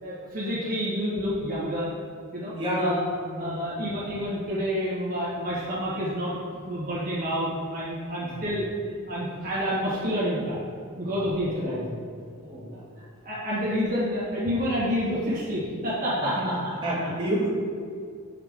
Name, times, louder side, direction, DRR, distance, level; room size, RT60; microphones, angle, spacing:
voice 1, 0.0-1.9 2.3-3.0 3.4-6.3 6.6-8.7 9.1-10.6 11.0-11.8 12.7-12.8 13.2-16.5, equal, 40° right, -8 dB, 1.5 m, -28 dB
voice 2, 2.6-3.9 8.2-8.4 10.9-11.1 11.6-11.9 12.2-12.7 16.1-16.5 16.8-17.5, right 1 dB, 20° right, -8 dB, 1.8 m, -30 dB
7.3 x 5.8 x 3.6 m, 2.2 s
head